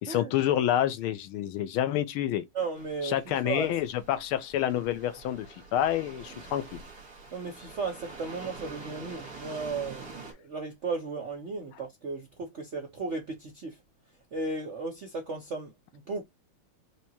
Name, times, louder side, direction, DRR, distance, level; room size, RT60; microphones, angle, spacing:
voice 1, 0.0-2.4 3.0-6.8, left 11 dB, 80° left, 1.5 m, -28 dB
voice 2, 2.5-3.8 7.3-13.8 14.3-16.2, right 4 dB, 60° right, 0.7 m, -35 dB
sound 1, 2.7-10.3, right 3 dB, 45° right, 2.1 m, -46 dB
4.8 x 2.9 x 2.8 m
omnidirectional pair, 2.3 m